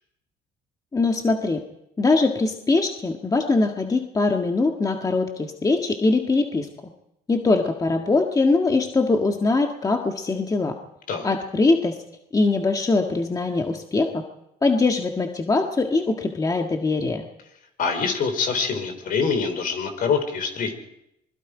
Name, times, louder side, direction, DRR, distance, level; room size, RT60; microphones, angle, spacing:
voice 1, 0.9-1.6 2.0-6.7 7.3-10.7 11.2-12.0 12.3-14.2 14.6-17.2, left 3 dB, 20° left, 3 dB, 1.7 m, -22 dB
voice 2, 17.8-20.7, left 5 dB, 55° left, 7 dB, 4.0 m, -25 dB
26.0 x 21.5 x 5.0 m, 0.82 s
cardioid pair, 110°, 17 cm